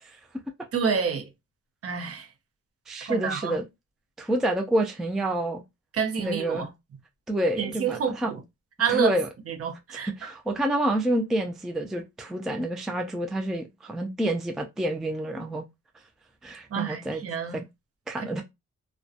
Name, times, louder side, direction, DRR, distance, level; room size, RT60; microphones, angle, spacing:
voice 1, 0.7-1.3 1.8-2.3 3.1-3.6 5.9-6.7 7.6-8.4 8.8-9.2 9.5-10.3 16.7-17.6 18.2-18.4, right 6 dB, 50° right, 0.6 m, -28 dB
voice 2, 2.9-3.6 4.2-5.6 6.2-6.7 7.3-8.3 8.9-9.3 10.0-15.7 16.4-17.2 17.5-17.6 18.1-18.4, right 1 dB, ahead, 0.3 m, -28 dB
2.6 x 2.2 x 2.4 m
cardioid pair, 115°, 30 cm